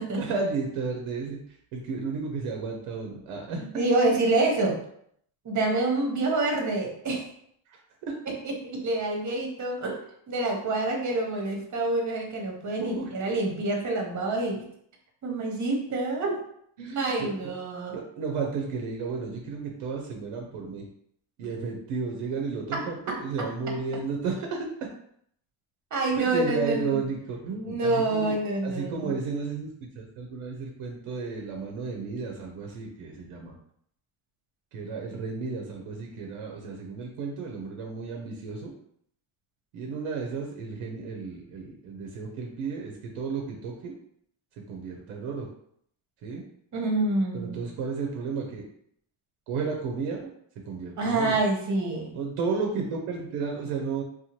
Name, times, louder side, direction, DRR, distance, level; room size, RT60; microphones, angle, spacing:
voice 1, 0.2-1.4 1.7-3.7 7.7-7.8 8.0-8.2 12.8-13.4 16.8-17.5 17.9-20.8 21.4-24.7 26.2-33.5 34.7-38.7 39.7-43.9 44.7-45.5 46.2-46.4 47.3-48.7 49.5-50.3 50.7-51.4 52.1-54.0, right 4 dB, 90° right, 0 dB, 0.7 m, -33 dB
voice 2, 3.5-4.8 5.4-7.2 8.3-8.4 8.8-10.0 10.3-14.6 15.2-16.4 17.0-17.9 25.9-27.0 27.6-29.1 46.7-47.7 51.0-52.1, right 2 dB, 35° right, 1 dB, 0.9 m, -27 dB
2.7 x 2.2 x 2.9 m, 0.67 s
cardioid pair, 90°, 49 cm